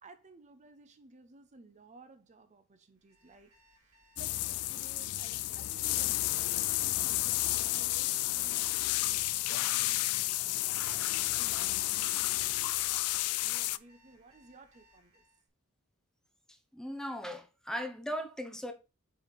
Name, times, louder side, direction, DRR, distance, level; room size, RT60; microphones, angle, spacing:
voice 1, 0.0-3.5 3.8-10.3 10.9-12.7 13.0-15.2, right 3 dB, 35° right, 0.6 m, -57 dB
Alarm, 2.9-15.4, left 1 dB, 70° right, 3.5 m, -65 dB
sound 1, 4.2-13.8, left 17 dB, 75° left, 0.3 m, -31 dB
voice 2, 16.5-18.7, equal, 5° left, 0.7 m, -38 dB
7.7 x 3.3 x 4.0 m
head